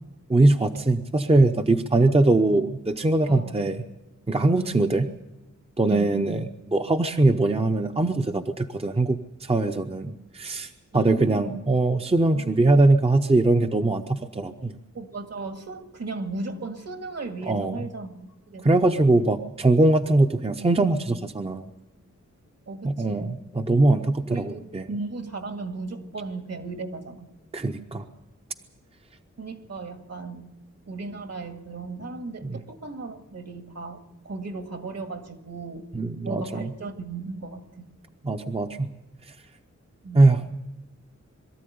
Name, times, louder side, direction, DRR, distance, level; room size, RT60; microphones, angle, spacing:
voice 1, 0.3-3.8 4.3-5.1 5.8-14.8 17.5-17.9 18.6-21.7 22.8-24.9 27.5-28.0 32.4-32.6 35.9-36.7 38.2-38.9 40.1-40.4, right 2 dB, 20° right, 6 dB, 0.8 m, -22 dB
voice 2, 4.6-4.9 5.9-6.2 10.9-11.7 12.3-12.8 14.9-18.9 22.7-23.4 24.3-27.3 29.4-30.5 30.9-35.8 36.2-37.9 40.0-40.4, right 3 dB, 55° right, 6 dB, 2.0 m, -36 dB
22.5 x 13.5 x 9.4 m, 0.97 s
wide cardioid pair, 125°, 30 cm